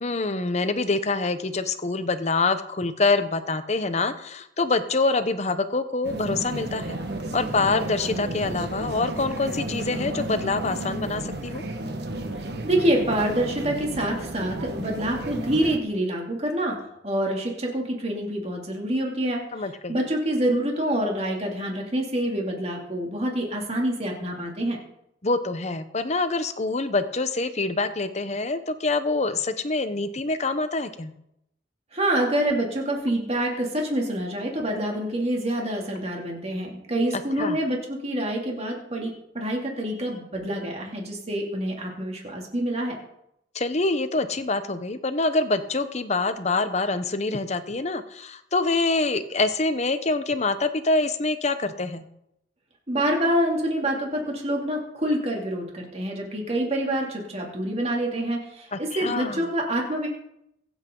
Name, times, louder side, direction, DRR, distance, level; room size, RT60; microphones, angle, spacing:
voice 1, 0.0-7.0 7.3-11.6 19.5-20.0 25.2-31.1 37.4-37.6 43.5-52.0 58.7-59.4, left 3 dB, 40° left, 10 dB, 0.9 m, -25 dB
sound 1, 6.0-15.8, right 1 dB, 60° right, 1.5 m, -33 dB
voice 2, 12.4-19.4 19.9-24.8 31.9-43.0 52.9-60.1, right 1 dB, 35° right, 0 dB, 2.8 m, -26 dB
23.5 x 8.1 x 3.9 m, 0.79 s
head